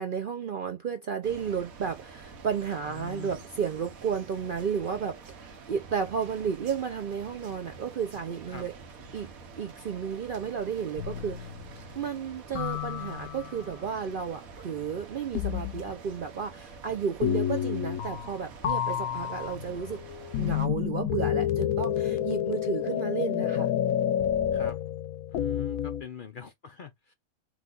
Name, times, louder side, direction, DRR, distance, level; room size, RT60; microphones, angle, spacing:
voice 1, 0.0-8.7 9.1-9.3 9.6-20.0 20.4-23.7, right 7 dB, 60° right, 0.6 m, -33 dB
sound 1, 1.2-20.7, right 4 dB, 85° right, 1.4 m, -47 dB
voice 2, 2.9-3.4 8.5-8.7 24.5-24.8 25.3-27.1, left 8 dB, 55° left, 0.6 m, -43 dB
sound 2, 11.0-11.8 12.5-13.6 15.3-15.9 17.2-18.4 18.6-26.0, left 10 dB, 85° left, 1.0 m, -29 dB
4.8 x 2.3 x 3.7 m
omnidirectional pair, 1.5 m